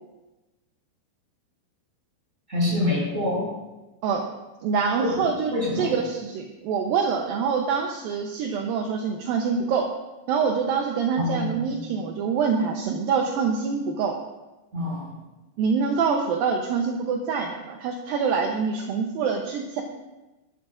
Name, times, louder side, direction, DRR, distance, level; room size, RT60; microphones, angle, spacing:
voice 1, 2.5-3.5 5.0-5.3 5.5-5.9 11.2-11.7 14.7-15.1, left 1 dB, 20° right, -4 dB, 5.2 m, -26 dB
voice 2, 4.6-9.9 10.3-14.2 15.6-19.8, right 5 dB, 75° right, 2 dB, 2.5 m, -25 dB
19.0 x 13.5 x 2.5 m, 1.1 s
omnidirectional pair, 4.5 m